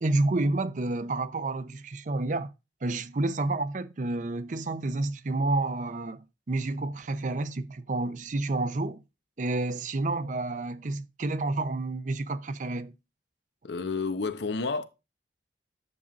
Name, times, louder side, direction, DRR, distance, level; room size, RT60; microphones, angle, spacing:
voice 1, 0.0-2.5 2.8-6.2 6.5-9.0 9.4-12.9, right 2 dB, 45° right, 0.5 m, -29 dB
voice 2, 13.6-14.8, left 4 dB, 80° left, 0.8 m, -30 dB
11.0 x 7.3 x 2.5 m
head